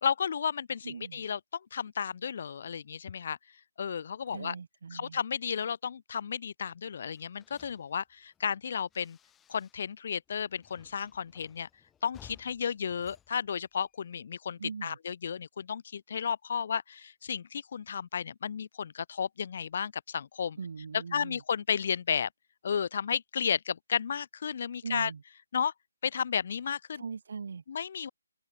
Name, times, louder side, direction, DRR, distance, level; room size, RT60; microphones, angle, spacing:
voice 1, 0.0-3.4 3.8-4.5 4.9-9.2 9.5-11.7 12.0-20.6 20.9-22.3 22.6-25.1 25.5-25.7 26.0-27.0 27.7-28.1, left 7 dB, 45° left, 0.7 m, -33 dB
voice 2, 0.8-1.2 4.3-5.2 14.6-15.0 20.6-21.4 24.8-25.2 27.0-27.6, right 5 dB, 55° right, 1.2 m, -40 dB
Bus Closing Door, 7.1-10.0 10.3-14.2, left 9 dB, 10° left, 1.8 m, -59 dB
open air
figure-of-eight pair, 150°, 0 cm